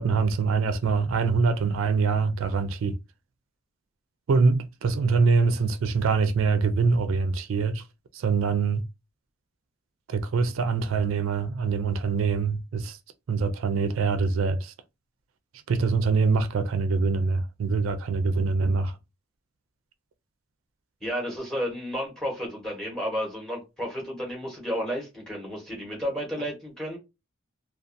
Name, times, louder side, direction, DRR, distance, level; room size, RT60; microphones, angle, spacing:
voice 1, 0.0-3.0 4.3-7.8 8.1-8.8 10.1-13.0 13.3-14.7 15.7-19.0, right 4 dB, 75° right, 0.4 m, -24 dB
voice 2, 21.0-27.0, equal, 5° left, 1.1 m, -32 dB
2.5 x 2.3 x 2.5 m
head